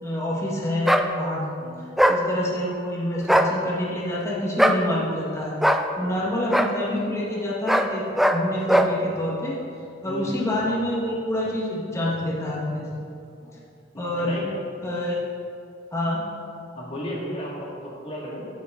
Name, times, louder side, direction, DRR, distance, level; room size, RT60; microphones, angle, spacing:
voice 1, 0.0-1.4 2.1-5.6 6.0-8.0 8.3-9.6 10.0-12.9 14.0-14.4 14.8-15.2 15.9-16.3, left 1 dB, 15° left, -6 dB, 1.6 m, -27 dB
sound 1, 0.8-1.1 2.0-2.2 3.2-3.5 4.6-4.8 5.6-5.8 6.5-6.7 7.7-7.9 8.2-8.4 8.7-8.9, equal, ahead, 0.3 m, -19 dB
voice 2, 10.0-10.3 13.4-13.6 13.9-14.5 14.8-15.0 16.7-18.5, equal, 35° left, -5 dB, 2.1 m, -35 dB
9.1 x 7.9 x 3.8 m, 2.5 s
head